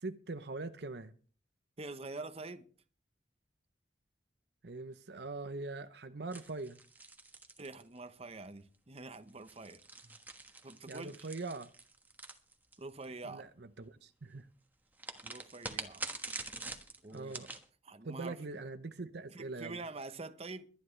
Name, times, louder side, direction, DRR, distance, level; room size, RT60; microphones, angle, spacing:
voice 1, 0.0-1.1 4.6-6.8 10.9-11.7 13.2-14.5 17.1-17.5 18.0-19.8, right 3 dB, 65° right, 0.8 m, -42 dB
voice 2, 1.8-2.7 7.6-10.2 10.6-11.3 12.8-13.4 15.2-16.1 17.0-17.3 17.8-18.4 19.3-20.7, right 3 dB, 35° right, 0.9 m, -46 dB
sound 1, 6.3-8.3 9.3-13.0 15.0-17.6, right 3 dB, 10° right, 1.4 m, -45 dB
22.5 x 10.0 x 3.2 m
head